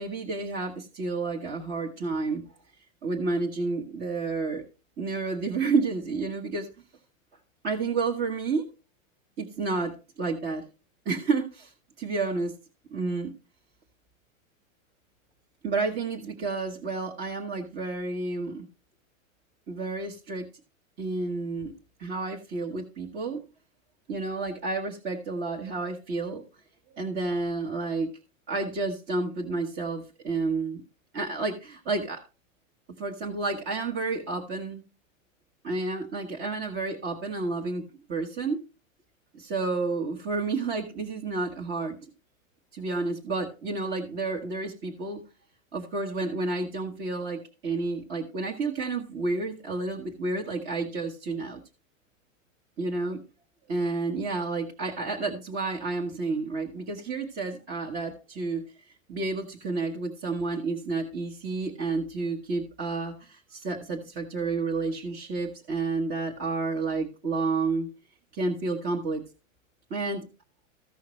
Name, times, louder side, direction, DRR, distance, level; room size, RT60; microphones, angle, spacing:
voice 1, 0.0-2.4 3.0-4.6 5.0-6.7 7.6-8.6 9.4-10.6 11.0-12.5 12.9-13.3 15.6-18.7 19.7-20.5 21.0-21.7 22.0-23.4 24.1-26.4 26.9-28.1 28.5-30.8 31.1-32.2 33.0-34.8 35.6-37.8 38.1-38.6 39.3-42.0 42.7-45.2 45.7-51.6 52.8-53.2 53.7-58.6 59.1-67.9 68.3-69.2 69.9-70.2, right 3 dB, 25° right, 0 dB, 1.3 m, -30 dB
15.0 x 5.6 x 3.1 m, 0.31 s
supercardioid pair, 150°, 41 cm